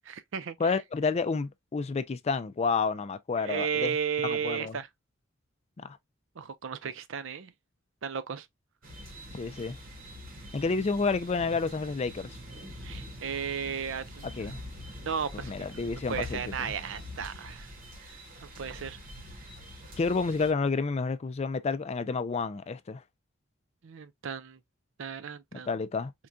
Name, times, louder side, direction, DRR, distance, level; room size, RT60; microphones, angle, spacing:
voice 1, 0.1-0.8 3.4-4.9 6.4-7.5 8.0-8.5 12.8-14.3 15.1-15.7 16.1-17.7 18.0-18.1 18.4-19.0 23.8-24.6 25.0-25.7, right 7 dB, 70° right, 0.5 m, -34 dB
voice 2, 0.6-4.0 4.2-4.8 5.8-6.0 9.3-9.8 10.5-12.4 14.2-14.6 15.4-16.7 20.0-23.0 25.5-26.1, left 4 dB, 30° left, 0.4 m, -30 dB
sound 1, 8.8-20.5, equal, 45° right, 1.5 m, -45 dB
4.5 x 2.6 x 2.2 m
head